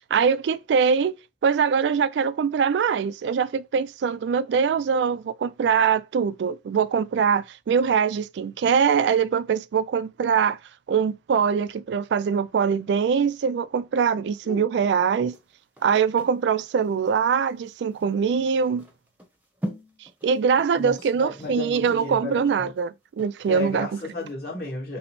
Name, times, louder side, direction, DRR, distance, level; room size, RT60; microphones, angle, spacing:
voice 1, 0.1-1.1 1.4-10.6 10.9-15.4 15.8-18.9 20.2-23.9, right 6 dB, 80° right, 0.3 m, -23 dB
sound 1, 15.3-23.8 24.2-24.3, equal, 10° right, 0.7 m, -42 dB
voice 2, 20.8-22.7 23.5-25.0, left 3 dB, 60° left, 1.8 m, -34 dB
5.3 x 2.1 x 2.9 m
head